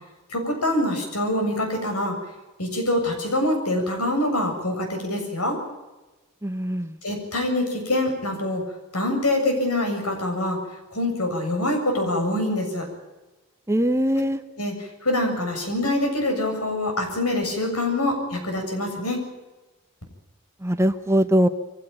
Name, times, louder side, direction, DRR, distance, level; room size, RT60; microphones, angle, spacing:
voice 1, 0.3-2.2 2.6-5.6 7.0-8.6 8.9-10.6 10.9-12.9 14.6-19.2, left 1 dB, 80° left, 3 dB, 7.4 m, -25 dB
voice 2, 6.4-6.9 13.7-14.4 20.6-21.5, equal, 10° right, 10 dB, 0.9 m, -21 dB
23.5 x 17.0 x 9.0 m, 1.1 s
head